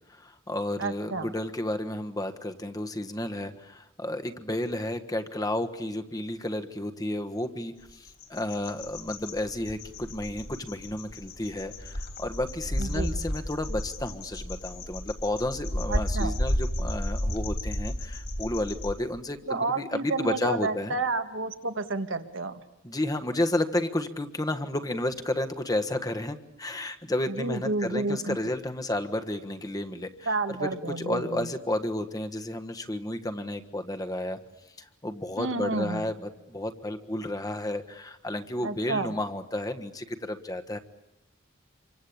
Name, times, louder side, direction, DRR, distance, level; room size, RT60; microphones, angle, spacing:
voice 1, 0.1-20.9 22.8-34.4 34.8-40.8, left 1 dB, 20° left, 7 dB, 1.4 m, -32 dB
voice 2, 0.8-1.3 12.8-13.2 15.9-16.4 19.5-22.6 27.3-28.4 30.2-31.5 35.4-36.0 38.6-39.1, right 3 dB, 75° right, 8 dB, 1.8 m, -30 dB
sound 1, 7.9-19.0, equal, 55° left, 3.8 m, -33 dB
27.5 x 24.5 x 8.7 m, 0.87 s
head